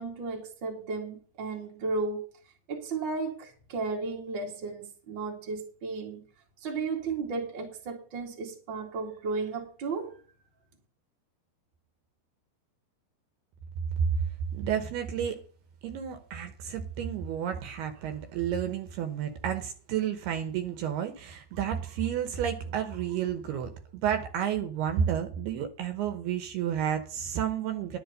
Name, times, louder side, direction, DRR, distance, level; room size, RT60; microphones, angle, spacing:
voice 1, 0.0-2.3 2.7-6.2 6.6-10.2, right 4 dB, 35° right, 2.1 m, -34 dB
voice 2, 14.5-15.4 15.8-28.0, right 9 dB, 75° right, 2.8 m, -31 dB
11.0 x 7.2 x 6.5 m
omnidirectional pair, 5.0 m